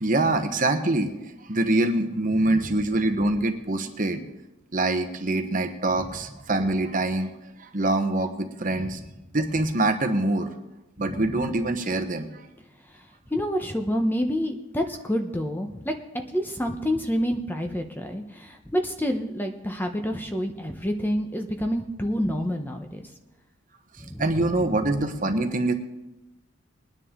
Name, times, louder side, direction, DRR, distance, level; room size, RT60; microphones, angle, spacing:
voice 1, 0.0-1.1 1.5-4.2 4.7-7.3 7.6-9.0 9.3-10.5 11.0-12.3 24.2-25.7, right 2 dB, 40° right, 6 dB, 1.0 m, -24 dB
voice 2, 13.3-16.0 16.3-23.0 24.0-24.9, equal, 10° left, 4 dB, 0.9 m, -28 dB
21.5 x 9.8 x 3.8 m, 0.96 s
head